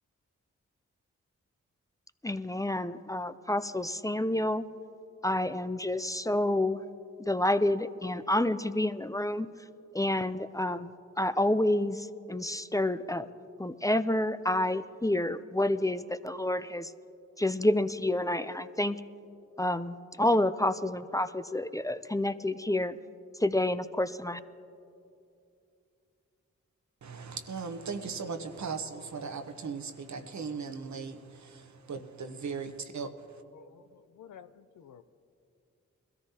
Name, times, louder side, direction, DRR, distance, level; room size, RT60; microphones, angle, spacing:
voice 1, 2.2-4.7 5.2-6.8 7.2-9.5 9.9-13.3 13.6-16.9 17.4-19.0 19.6-22.9 23.4-24.4, left 1 dB, 10° left, 0.4 m, -29 dB
voice 2, 27.0-33.4, right 5 dB, 65° right, 1.0 m, -38 dB
voice 3, 33.5-35.0, left 8 dB, 75° left, 0.6 m, -52 dB
21.0 x 13.5 x 2.8 m
cardioid pair, 40°, 31 cm